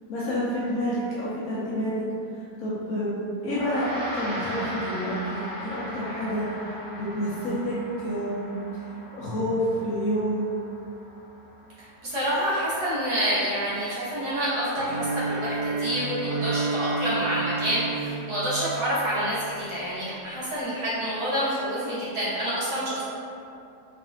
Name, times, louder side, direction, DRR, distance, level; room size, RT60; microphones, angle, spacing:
voice 1, 0.0-2.0 2.6-6.7 7.0-7.8 8.0-8.5 9.1-10.4, equal, 65° left, -8 dB, 1.0 m, -28 dB
Gong, 3.4-13.0, equal, 50° right, 1.5 m, -38 dB
voice 2, 12.0-23.0, equal, 65° right, -10 dB, 1.5 m, -28 dB
Bowed string instrument, 14.7-19.7, right 3 dB, 85° right, 1.8 m, -31 dB
3.5 x 3.1 x 2.5 m, 2.7 s
omnidirectional pair, 1.9 m